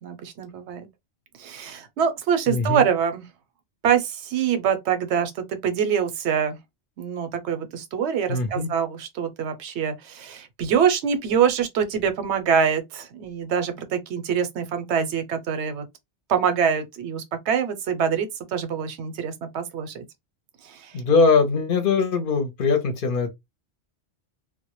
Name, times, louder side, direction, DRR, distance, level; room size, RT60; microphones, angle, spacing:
voice 1, 0.0-0.9 1.4-3.2 3.8-6.6 7.0-15.9 16.3-20.0 20.7-20.9, right 7 dB, 85° right, 0.9 m, -25 dB
voice 2, 2.5-2.9 8.3-8.7 20.9-23.3, left 4 dB, 60° left, 0.7 m, -21 dB
2.1 x 2.1 x 2.9 m
omnidirectional pair, 1.1 m